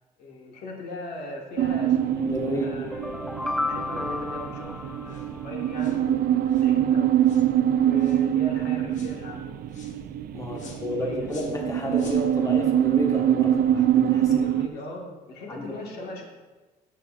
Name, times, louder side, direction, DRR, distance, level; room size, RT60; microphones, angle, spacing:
voice 1, 0.2-3.0 3.6-6.3 6.6-7.1 7.7-9.6 10.5-10.7 11.0-11.4 14.2-16.2, left 2 dB, 70° left, 0 dB, 1.6 m, -39 dB
sound 1, 1.6-14.7, right 11 dB, 60° right, 0.4 m, -24 dB
voice 2, 2.2-2.8 10.3-14.4 15.5-15.8, left 1 dB, 20° left, 0 dB, 1.3 m, -31 dB
sound 2, 2.8-5.8, left 2 dB, ahead, 0.5 m, -32 dB
sound 3, 5.1-5.3 5.8-6.0 6.5-6.7 7.2-7.5 8.0-8.3 8.9-9.2 9.7-10.0 10.6-10.8 11.3-11.6 11.9-12.3, left 3 dB, 45° left, 1.4 m, -45 dB
11.0 x 7.5 x 2.5 m, 1.2 s
cardioid pair, 110°, 17 cm